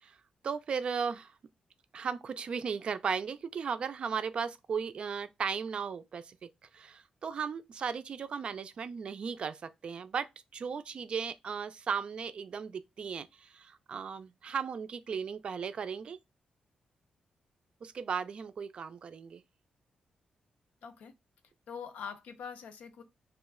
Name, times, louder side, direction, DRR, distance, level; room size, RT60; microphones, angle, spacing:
voice 1, 0.4-1.3 1.9-6.4 6.7-10.3 10.5-16.2 17.8-19.4, right 6 dB, 45° right, 0.3 m, -36 dB
voice 2, 20.8-21.1 21.7-23.0, left 6 dB, 90° left, 0.5 m, -43 dB
3.0 x 2.4 x 3.5 m
wide cardioid pair, 160°, 2 cm